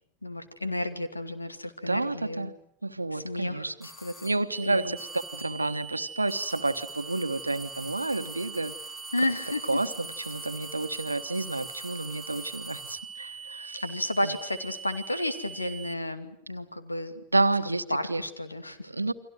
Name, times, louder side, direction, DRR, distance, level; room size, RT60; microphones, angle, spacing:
voice 1, 0.2-2.5 3.1-4.3 4.6-5.0 9.1-9.8 13.8-17.2 17.7-18.9, left 1 dB, 85° left, 9 dB, 2.6 m, -32 dB
voice 2, 1.9-2.5 2.8-3.7 4.2-4.9 5.3-8.7 9.7-9.9 10.3-13.8 14.2-14.3 17.3-18.2 18.9-19.1, right 2 dB, 85° right, 11 dB, 1.3 m, -29 dB
sound 1, 3.8-4.5 5.0-5.7 6.3-13.1, left 1 dB, 20° left, 3.8 m, -46 dB
sound 2, 4.5-15.9, right 7 dB, 15° right, 1.6 m, -43 dB
30.0 x 24.5 x 6.4 m, 0.69 s
figure-of-eight pair, 90°, 0 cm